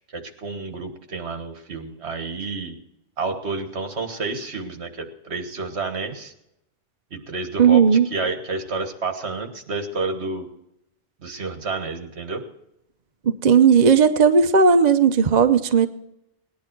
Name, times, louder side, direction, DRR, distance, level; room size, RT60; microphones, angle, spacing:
voice 1, 0.1-2.7 3.2-6.3 7.1-10.5 11.2-12.4, right 3 dB, 65° right, 6 dB, 1.7 m, -30 dB
voice 2, 7.6-8.1 13.3-15.9, right 6 dB, 45° right, 8 dB, 0.7 m, -15 dB
18.5 x 10.5 x 4.5 m, 0.84 s
omnidirectional pair, 1.2 m